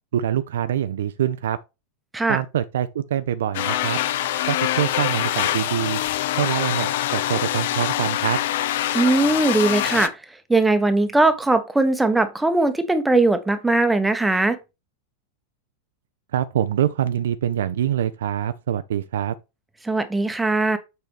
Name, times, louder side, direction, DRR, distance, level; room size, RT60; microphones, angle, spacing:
voice 1, 0.1-1.6 2.3-4.0 4.5-6.0 6.4-8.4 16.3-19.3, right 10 dB, 60° right, 0.4 m, -24 dB
sound 1, 3.5-10.1, left 13 dB, 55° left, 0.4 m, -24 dB
voice 2, 8.9-10.1 10.5-14.6 19.8-20.8, right 2 dB, 5° right, 0.8 m, -19 dB
6.8 x 4.3 x 3.3 m
figure-of-eight pair, 90°, 0 cm